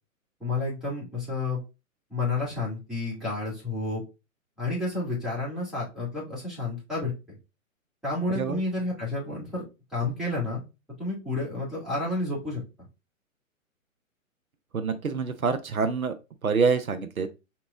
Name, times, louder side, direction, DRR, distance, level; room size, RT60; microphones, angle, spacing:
voice 1, 0.4-1.6 2.1-4.0 4.6-7.1 8.0-9.6 9.9-10.6 11.0-12.6, left 2 dB, ahead, 2.3 m, -30 dB
voice 2, 14.7-16.1 16.4-17.3, right 5 dB, 85° right, 0.7 m, -26 dB
4.4 x 2.9 x 3.4 m
figure-of-eight pair, 120°, 41 cm